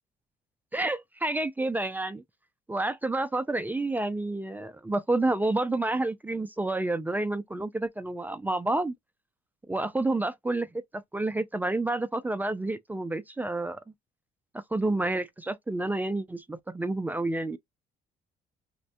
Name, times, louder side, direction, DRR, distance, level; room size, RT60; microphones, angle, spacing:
voice 1, 0.7-2.2 2.7-8.9 9.7-10.7 10.9-13.8 14.5-17.6, right 2 dB, 10° right, 0.3 m, -29 dB
4.3 x 2.1 x 2.6 m
cardioid pair, 110°, 17 cm